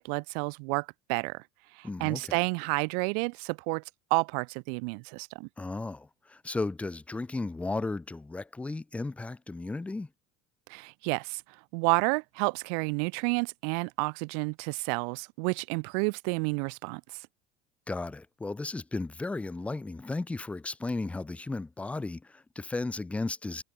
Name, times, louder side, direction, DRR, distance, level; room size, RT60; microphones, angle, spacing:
voice 1, 0.0-1.4 1.8-3.8 4.1-5.5 10.7-11.4 11.7-17.0, right 40 dB or more, 75° right, 1.1 m, -30 dB
voice 2, 1.8-2.4 5.6-10.1 17.9-23.6, left 3 dB, 5° left, 0.6 m, -35 dB
cardioid pair, 165°, 21 cm